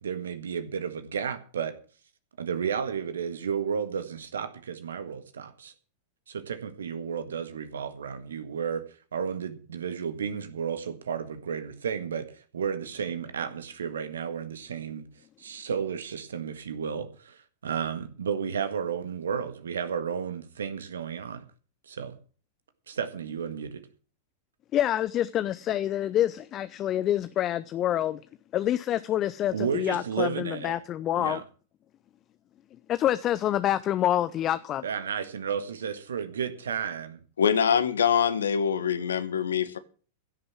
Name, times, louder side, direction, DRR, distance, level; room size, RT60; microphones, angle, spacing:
voice 1, 0.0-1.7 2.4-5.7 6.3-8.8 9.1-15.1 15.4-21.4 21.9-22.1 22.9-23.8 29.5-30.7 31.2-31.4 34.8-37.2, right 7 dB, 70° right, 1.7 m, -32 dB
voice 2, 24.7-28.2 28.5-31.4 32.9-34.8, left 12 dB, 30° left, 0.6 m, -27 dB
voice 3, 37.4-39.8, left 7 dB, 70° left, 1.4 m, -24 dB
16.0 x 6.8 x 7.5 m
figure-of-eight pair, 95°, 0 cm